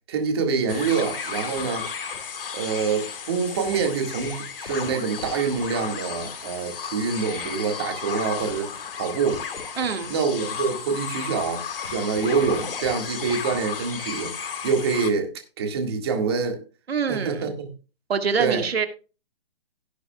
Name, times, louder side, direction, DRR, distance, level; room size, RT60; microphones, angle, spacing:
voice 1, 0.1-1.9 2.5-9.4 10.1-14.3 14.6-15.3 15.6-16.6 17.1-17.7 18.4-18.7, right 5 dB, 25° right, 1.9 m, -26 dB
sound 1, 0.7-15.1, left 6 dB, 60° left, 2.0 m, -33 dB
voice 2, 9.8-10.1 16.9-17.5 18.1-18.9, right 6 dB, 70° right, 2.0 m, -25 dB
17.0 x 8.2 x 2.3 m
hypercardioid pair, 175°, 32 cm